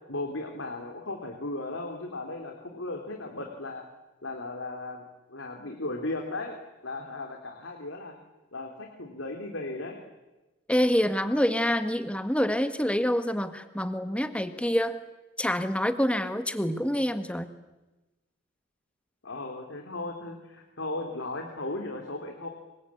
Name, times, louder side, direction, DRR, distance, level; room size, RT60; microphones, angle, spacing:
voice 1, 0.1-3.8 4.2-5.0 5.3-6.6 6.8-8.1 8.5-10.0 19.2-22.5, left 2 dB, 85° left, 3 dB, 3.4 m, -36 dB
voice 2, 10.7-15.0 15.4-17.5, equal, 5° left, 9 dB, 1.7 m, -26 dB
26.5 x 23.5 x 8.6 m, 1.1 s
head